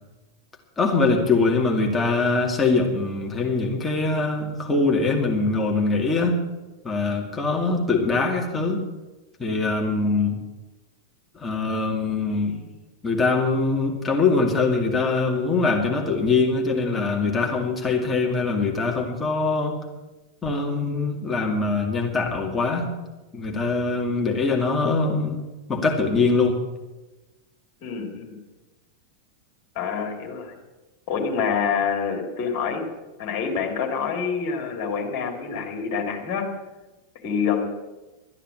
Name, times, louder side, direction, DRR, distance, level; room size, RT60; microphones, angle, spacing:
voice 1, 0.8-6.4 6.8-8.8 9.4-10.4 11.3-12.6 13.0-19.8 20.4-22.9 23.3-25.4 25.7-26.6, left 3 dB, 15° left, 1 dB, 2.3 m, -23 dB
voice 2, 27.8-28.4 29.7-30.5 31.1-32.8 33.2-36.5 37.2-37.7, left 6 dB, 45° left, 3 dB, 3.2 m, -26 dB
13.0 x 10.0 x 8.2 m, 1.1 s
figure-of-eight pair, 90°, 0 cm